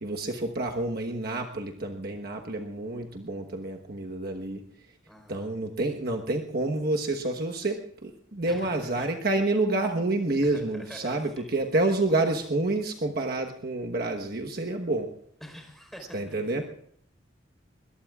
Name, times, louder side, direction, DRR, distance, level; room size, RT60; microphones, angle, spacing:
voice 1, 0.0-4.6 5.3-15.1 16.1-16.7, right 2 dB, 50° right, 2 dB, 1.3 m, -28 dB
voice 2, 5.1-5.4 8.4-9.1 10.4-11.6 15.4-16.3, equal, ahead, 2 dB, 4.4 m, -46 dB
21.5 x 21.5 x 2.4 m, 0.64 s
head